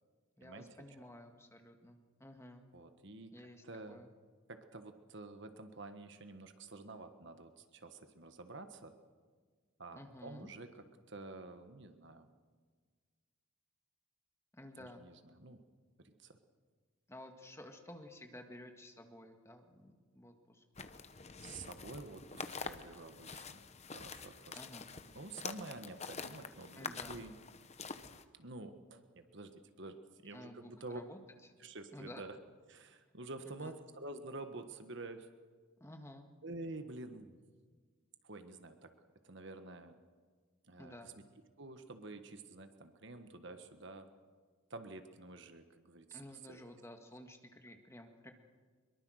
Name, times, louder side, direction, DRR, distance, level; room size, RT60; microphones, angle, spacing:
voice 1, 0.4-2.7 3.3-4.1 9.9-10.5 14.5-15.0 17.1-20.6 24.5-24.9 26.8-27.1 30.3-31.2 31.9-32.3 33.5-33.7 35.8-36.3 40.8-41.1 46.1-48.3, left 1 dB, 15° left, 4 dB, 1.8 m, -53 dB
voice 2, 2.7-4.0 4.5-8.9 9.8-12.3 14.8-15.6 16.0-16.4 21.4-23.6 23.9-24.6 25.1-27.3 28.3-31.0 31.6-32.4 32.7-35.3 36.4-37.4 38.2-38.9 39.2-40.0 40.6-41.2 41.6-44.1 44.7-46.6, right 2 dB, 55° right, 8 dB, 1.5 m, -49 dB
sound 1, 20.8-28.2, left 5 dB, 30° left, 0.9 m, -47 dB
23.0 x 22.5 x 6.5 m, 1.5 s
head